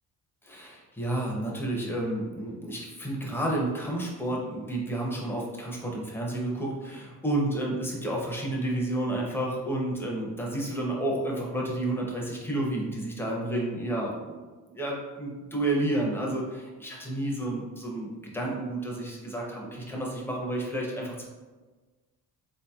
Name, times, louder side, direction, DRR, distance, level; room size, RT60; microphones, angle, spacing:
voice 1, 0.4-14.4 14.7-21.2, right 1 dB, 5° left, -2 dB, 0.5 m, -31 dB
3.7 x 2.7 x 2.2 m, 1.3 s
cardioid pair, 160°, 36 cm